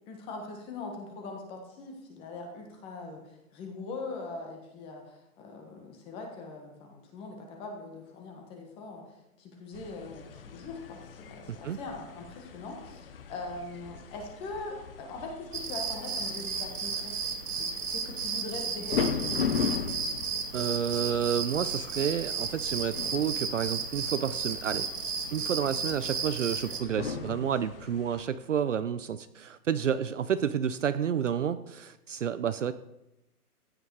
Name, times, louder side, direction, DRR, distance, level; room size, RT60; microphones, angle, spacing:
voice 1, 0.1-9.0 9.4-17.1 17.5-19.8, left 3 dB, 10° left, 3 dB, 1.3 m, -41 dB
sound 1, 9.7-28.2, left 6 dB, 35° left, 0.9 m, -39 dB
voice 2, 11.5-11.8 20.5-24.9 25.3-32.7, right 8 dB, 55° right, 13 dB, 0.6 m, -30 dB
sound 2, 15.5-26.8, right 5 dB, 70° right, 2.5 m, -34 dB
15.0 x 9.1 x 4.7 m, 0.89 s
hypercardioid pair, 165°, 46 cm